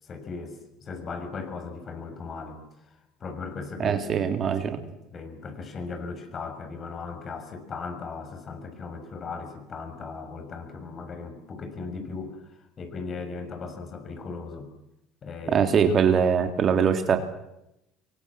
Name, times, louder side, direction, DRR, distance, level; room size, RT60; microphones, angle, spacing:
voice 1, 0.0-4.0 4.5-4.8 5.1-14.7 15.2-15.7, left 4 dB, 40° left, 7 dB, 6.4 m, -38 dB
voice 2, 3.8-4.8 15.5-17.2, right 7 dB, 40° right, 7 dB, 3.2 m, -22 dB
26.0 x 24.0 x 7.6 m, 0.85 s
figure-of-eight pair, 60°, 0 cm